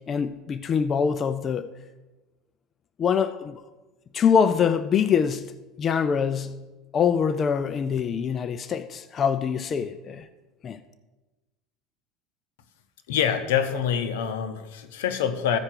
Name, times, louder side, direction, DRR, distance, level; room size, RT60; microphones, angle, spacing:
voice 1, 0.1-1.7 3.0-3.6 4.1-6.6 6.9-10.3 10.6-10.8, left 7 dB, 35° left, 0.4 m, -24 dB
voice 2, 13.1-15.6, left 8 dB, 85° left, 0.8 m, -25 dB
14.5 x 4.9 x 4.6 m
supercardioid pair, 120°, 0 cm